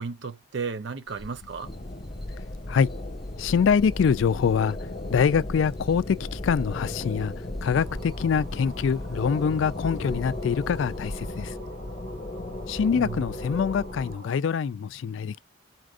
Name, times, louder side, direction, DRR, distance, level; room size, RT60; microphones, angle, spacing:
voice 1, 0.0-1.7 13.0-13.3, right 5 dB, 60° right, 0.6 m, -34 dB
sound 1, 1.1-11.3, left 1 dB, ahead, 0.6 m, -41 dB
sound 2, 1.6-14.2, left 1 dB, 35° left, 0.9 m, -36 dB
voice 2, 3.4-4.8 5.1-7.3 7.6-11.5 12.7-15.4, left 6 dB, 65° left, 0.3 m, -24 dB
sound 3, 7.7-14.4, right 2 dB, 75° right, 1.6 m, -48 dB
4.3 x 2.5 x 4.8 m
head